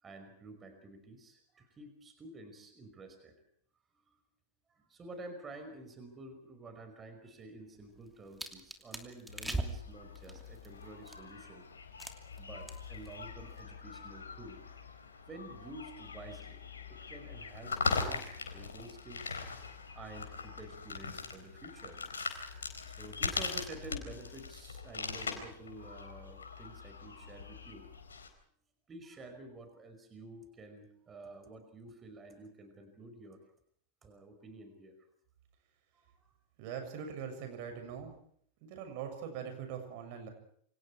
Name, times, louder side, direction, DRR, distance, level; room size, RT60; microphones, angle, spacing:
voice 1, 0.0-3.3 4.1-4.2 4.7-11.6 12.4-14.6 15.3-16.6 16.9-18.2 18.5-19.4 20.0-22.0 22.9-27.9 28.9-33.4 34.0-35.0 35.9-36.1, right 2 dB, 20° right, 6 dB, 5.3 m, -50 dB
sound 1, 7.8-11.4 12.0-12.4 12.7-13.1 13.3-13.6, right 1 dB, 5° right, 2.8 m, -41 dB
sound 2, 9.3-28.3, left 4 dB, 70° left, 4.1 m, -41 dB
voice 2, 36.6-38.1 38.6-40.3, right 7 dB, 45° right, 6 dB, 7.1 m, -42 dB
28.0 x 25.5 x 4.8 m, 0.63 s
figure-of-eight pair, 90°, 0 cm